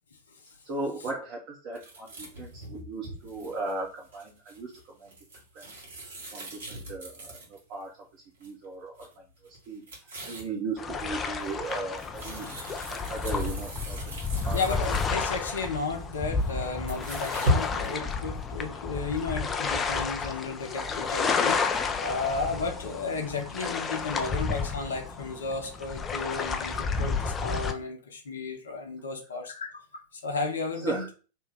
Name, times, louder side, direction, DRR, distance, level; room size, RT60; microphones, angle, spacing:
voice 1, 0.6-5.2 5.5-5.8 6.3-12.5 12.9-14.6 30.7-31.1, right 3 dB, 45° right, -4 dB, 0.7 m, -37 dB
sound 1, 1.7-7.8 8.4-8.6 9.0-9.1 9.4-10.5 11.0-15.4 16.3-17.9, left 1 dB, 65° right, 1.2 m, -36 dB
sound 2, 10.8-27.7, left 5 dB, 20° left, 0.4 m, -31 dB
voice 2, 14.5-29.7 30.1-31.1, left 4 dB, 70° left, 3 dB, 0.7 m, -33 dB
2.9 x 2.2 x 3.4 m, 0.36 s
figure-of-eight pair, 90°, 0 cm